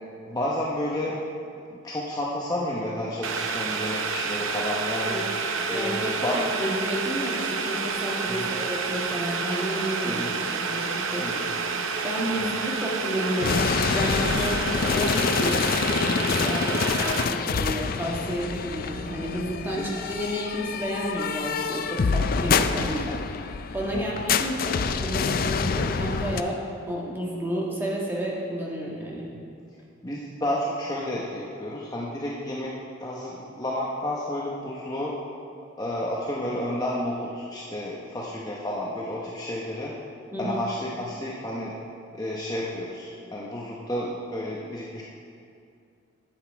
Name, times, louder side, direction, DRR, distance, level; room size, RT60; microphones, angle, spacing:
voice 1, 0.3-1.2 1.7-5.2 5.7-6.4 8.3-8.5 10.0-10.3 11.2-11.5 12.4-12.6 17.2-17.3 19.7-20.0 22.8-22.9 23.9-24.1 30.0-32.7 33.0-35.2 35.8-39.9 40.4-41.7 42.1-45.0, left 1 dB, 20° left, -5 dB, 0.8 m, -31 dB
Boiling, 3.2-17.2, right 4 dB, 70° right, 0.7 m, -29 dB
voice 2, 5.7-11.3 12.0-23.1 23.7-26.6 26.9-29.3 40.3-40.6, equal, 10° right, -4 dB, 1.5 m, -31 dB
sound 1, 13.4-26.4, left 5 dB, 45° left, 0.4 m, -26 dB
10.5 x 8.1 x 4.6 m, 2.5 s
head